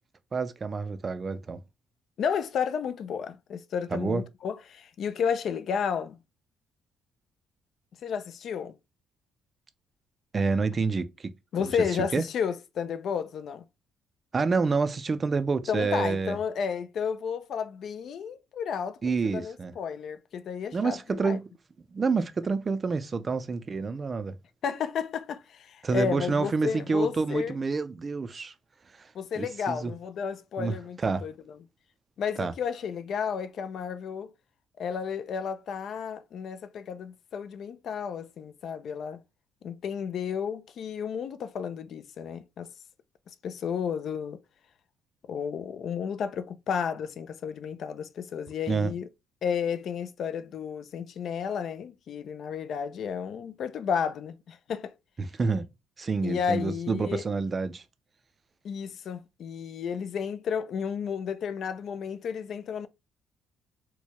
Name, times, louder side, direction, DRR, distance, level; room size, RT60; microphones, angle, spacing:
voice 1, 0.3-1.6 3.9-4.2 10.3-11.3 11.6-11.7 12.1-12.2 14.3-16.4 19.0-19.7 20.7-21.4 21.9-24.3 25.8-28.5 29.0-29.1 29.4-29.9 30.6-31.2 32.4-32.5 48.7-48.9 55.2-55.6 56.0-57.8, right 4 dB, 25° right, 0.4 m, -28 dB
voice 2, 2.2-6.2 8.0-8.7 11.5-13.6 15.7-21.4 24.6-27.6 29.1-31.3 32.2-34.3 34.8-39.2 39.6-42.7 43.4-44.4 45.3-49.1 49.4-54.9 56.2-57.2 58.6-62.9, left 7 dB, 55° left, 0.3 m, -32 dB
4.5 x 2.1 x 2.9 m
cardioid pair, 140°, 0 cm